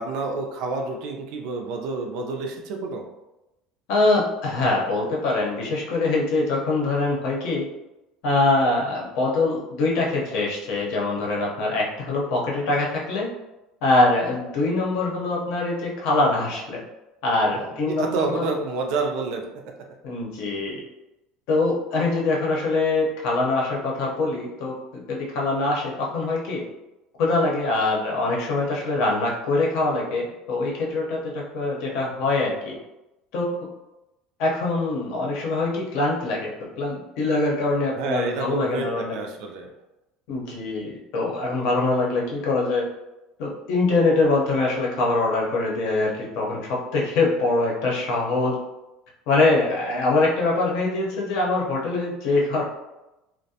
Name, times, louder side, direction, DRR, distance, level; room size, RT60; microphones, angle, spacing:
voice 1, 0.0-3.1 18.0-19.4 38.0-39.7, right 3 dB, 60° right, 2 dB, 0.4 m, -28 dB
voice 2, 3.9-7.7 8.2-13.3 13.8-16.8 17.2-18.4 20.0-20.8 21.5-26.6 27.2-32.8 33.3-33.7 34.4-36.5 36.8-39.2 40.3-42.8 43.4-48.6 49.3-52.6, left 2 dB, 60° left, -2 dB, 0.7 m, -23 dB
2.4 x 2.1 x 2.7 m, 0.97 s
cardioid pair, 170°, 0 cm